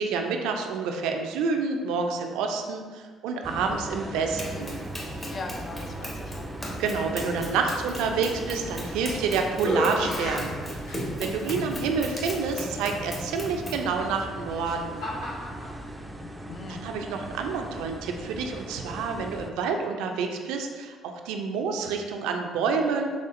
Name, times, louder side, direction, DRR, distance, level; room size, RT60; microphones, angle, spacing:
voice 1, 0.0-4.8 5.1-5.3 6.8-10.5 11.2-15.0 16.7-23.1, right 5 dB, 85° right, 4 dB, 0.4 m, -28 dB
sound 1, 3.4-19.5, right 1 dB, 15° right, 0.4 m, -38 dB
voice 2, 4.3-4.7 5.3-6.5 16.1-16.8, left 3 dB, 45° left, 4 dB, 0.5 m, -40 dB
Run, 4.4-13.9, left 1 dB, 25° left, 1.1 m, -38 dB
sound 2, 8.7-9.2 9.5-11.4 12.2-12.3 14.0-15.7, left 1 dB, 75° left, 1.0 m, -32 dB
4.0 x 3.5 x 2.5 m, 1.5 s
supercardioid pair, 70°, 0 cm